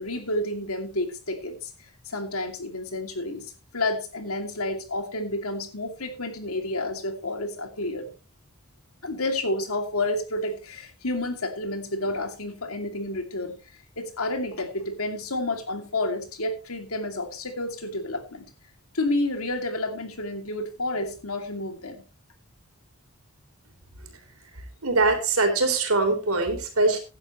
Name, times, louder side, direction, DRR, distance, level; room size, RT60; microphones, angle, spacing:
voice 1, 0.0-1.7 2.0-3.5 3.7-8.1 9.0-13.5 14.0-18.5 18.9-22.0, left 2 dB, 85° left, 5 dB, 2.6 m, -30 dB
voice 2, 24.8-27.0, right 3 dB, 90° right, 5 dB, 3.8 m, -22 dB
16.0 x 10.5 x 3.1 m, 0.32 s
head